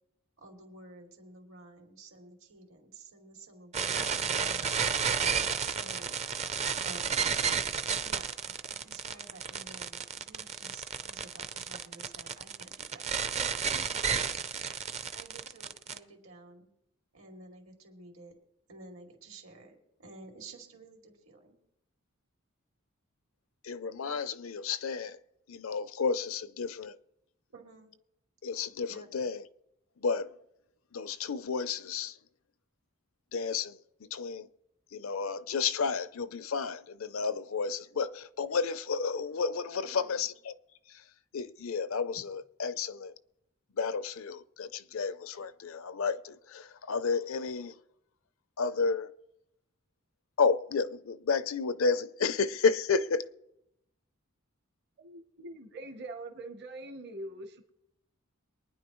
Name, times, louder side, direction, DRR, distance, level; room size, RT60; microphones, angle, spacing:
voice 1, 0.4-5.2 5.6-6.1 6.7-7.1 8.0-14.2 14.5-14.8 15.1-16.7 17.1-18.4 18.7-21.6 27.5-27.9 28.9-29.2 39.8-40.3, right 3 dB, 80° right, 2.7 m, -52 dB
sound 1, 3.7-16.0, right 6 dB, 35° right, 0.5 m, -32 dB
voice 2, 23.6-25.2 25.5-27.0 28.4-29.5 30.0-30.4 30.9-32.2 33.3-34.5 34.9-40.5 40.9-43.1 43.7-47.8 48.6-49.1 50.4-53.3, left 5 dB, 75° left, 0.6 m, -31 dB
voice 3, 55.0-57.7, right 2 dB, 55° right, 1.1 m, -43 dB
23.0 x 9.8 x 3.1 m
head